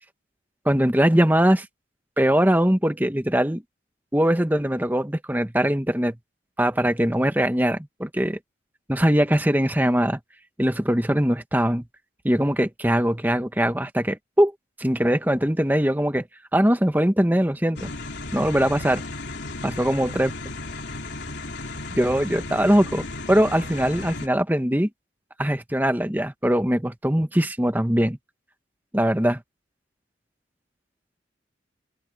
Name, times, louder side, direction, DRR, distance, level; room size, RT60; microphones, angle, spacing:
voice 1, 0.6-1.7 2.2-3.6 4.1-6.2 6.6-8.4 8.9-10.2 10.6-11.8 12.2-14.5 14.8-16.3 16.5-17.9 18.3-19.0 19.8-20.3 22.0-24.9 25.4-28.2 28.9-29.4, equal, 10° right, 1.3 m, -21 dB
sound 1, 17.8-24.3, left 2 dB, 65° left, 3.5 m, -35 dB
open air
head